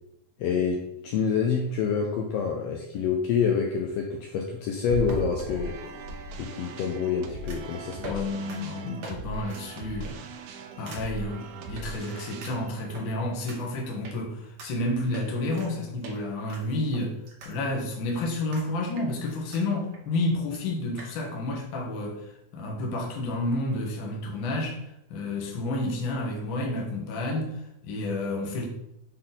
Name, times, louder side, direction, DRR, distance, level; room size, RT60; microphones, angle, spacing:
voice 1, 0.4-0.8 1.0-5.8 6.4-8.2, left 6 dB, 80° left, 1 dB, 1.4 m, -27 dB
sound 1, 4.8-6.2 7.5-7.7 8.0-8.2 8.5-8.6 9.0-9.1 9.5-9.6 10.0-10.3 10.9-11.0 11.8-11.9 12.4-13.0 13.5-13.6 14.0-14.1 14.6-14.7 15.1-15.7 16.0-16.2 16.5-17.5 17.8-17.9 18.5-18.7 19.0-19.6 19.9-20.0 20.2-20.3 20.5-20.6 21.0-21.1, right 2 dB, 60° right, 1.5 m, -39 dB
sound 2, 5.4-14.6, right 2 dB, 80° right, 1.9 m, -41 dB
voice 2, 8.0-10.2 10.8-17.2 17.4-28.7, left 2 dB, 60° left, 0 dB, 1.4 m, -30 dB
6.5 x 3.8 x 4.0 m, 0.81 s
omnidirectional pair, 3.6 m